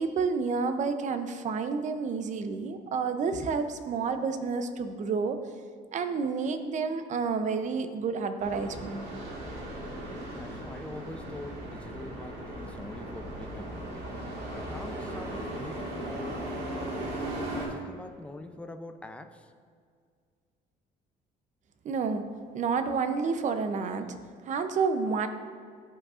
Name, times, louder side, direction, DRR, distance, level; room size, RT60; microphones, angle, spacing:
voice 1, 0.0-5.4 5.9-9.1 21.8-22.3 22.5-24.1 24.4-25.3, right 5 dB, 45° right, 9 dB, 0.6 m, -29 dB
sound 1, 8.4-17.7, right 1 dB, 75° right, 1.7 m, -37 dB
voice 2, 10.3-14.0 14.5-16.5 17.0-19.5, left 1 dB, 5° left, 7 dB, 0.4 m, -45 dB
12.5 x 4.8 x 2.5 m, 2.1 s
cardioid pair, 110°, 17 cm